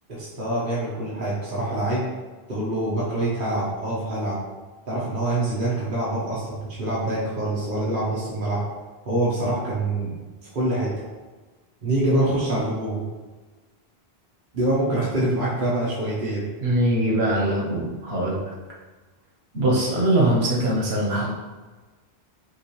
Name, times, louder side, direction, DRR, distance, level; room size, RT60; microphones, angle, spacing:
voice 1, 0.1-2.0 2.5-4.4 4.9-8.6 9.1-10.1 10.5-10.9 11.8-13.0 14.5-16.4, right 1 dB, 55° right, -7 dB, 1.2 m, -25 dB
voice 2, 16.6-18.5 19.5-21.3, right 1 dB, 90° right, -3 dB, 1.3 m, -22 dB
6.1 x 2.6 x 3.1 m, 1.3 s
omnidirectional pair, 1.0 m